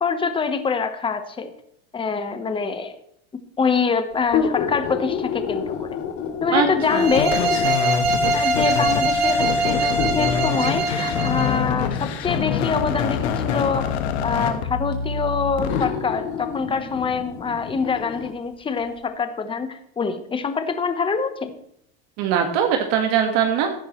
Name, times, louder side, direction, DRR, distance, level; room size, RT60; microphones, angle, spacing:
voice 1, 0.0-1.5 1.9-2.9 3.6-6.0 6.4-7.5 8.3-13.9 14.2-21.5, left 5 dB, 15° left, 9 dB, 1.1 m, -25 dB
sound 1, 4.2-7.9 8.8-8.9 10.0-13.9 14.9-15.0 15.7-18.3 18.8-18.9, left 7 dB, 60° left, 2.6 m, -29 dB
voice 2, 6.5-7.1 22.2-23.7, right 8 dB, 60° right, 4 dB, 1.7 m, -21 dB
sound 2, 6.8-11.6, right 2 dB, 80° right, 4.6 m, -23 dB
sound 3, 7.1-15.9, left 6 dB, 80° left, 1.5 m, -26 dB
15.5 x 10.0 x 3.1 m, 0.72 s
supercardioid pair, 120°, 32 cm